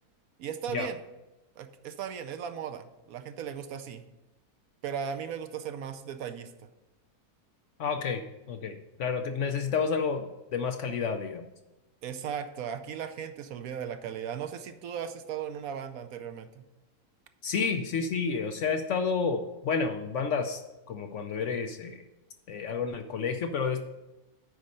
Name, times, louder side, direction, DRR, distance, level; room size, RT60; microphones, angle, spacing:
voice 1, 0.4-1.0 1.6-4.0 4.8-6.5 12.0-16.6, right 8 dB, 70° right, 9 dB, 1.0 m, -37 dB
voice 2, 7.8-8.2 8.5-11.5 17.4-20.6 20.9-22.0 22.5-23.9, left 5 dB, 65° left, 6 dB, 0.8 m, -30 dB
9.5 x 4.2 x 6.4 m, 1.0 s
omnidirectional pair, 1.6 m